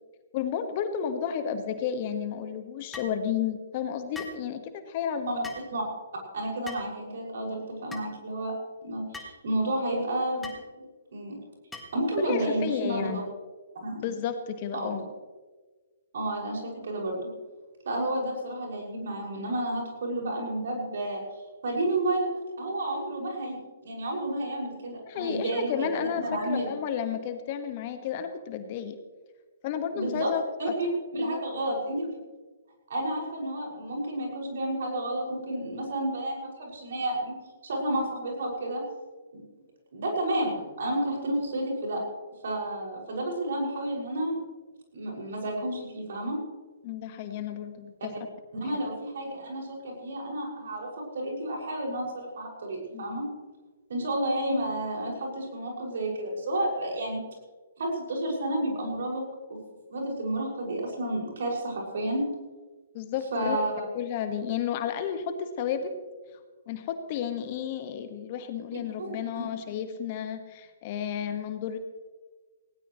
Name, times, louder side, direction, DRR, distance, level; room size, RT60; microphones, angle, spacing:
voice 1, 0.3-5.5 12.2-13.2 14.0-15.0 25.1-29.0 29.6-30.7 31.2-31.4 46.8-48.1 52.9-53.2 62.9-63.6 63.9-65.9 66.7-71.8, left 8 dB, 40° left, 8 dB, 1.6 m, -32 dB
sound 1, 2.9-3.2 4.1-4.4 5.4-5.7 6.7-6.9 7.9-8.1 9.1-9.4 10.4-10.6 11.7-12.0, left 2 dB, 5° left, 1.7 m, -41 dB
voice 2, 6.3-8.5 8.8-10.5 11.1-11.4 11.9-13.2 13.7-14.1 14.7-15.0 16.1-17.3 17.8-21.2 21.6-22.3 22.6-25.9 26.2-26.7 29.9-30.3 30.6-32.2 32.9-37.4 37.6-38.8 39.3-39.4 39.9-42.0 42.4-44.4 44.9-46.4 48.6-53.2 53.9-57.2 57.8-59.2 59.5-59.6 59.9-62.2 63.3-63.8 68.7-69.5, right 1 dB, 60° right, -1 dB, 6.2 m, -31 dB
19.0 x 17.5 x 3.2 m, 1.3 s
figure-of-eight pair, 130°, 0 cm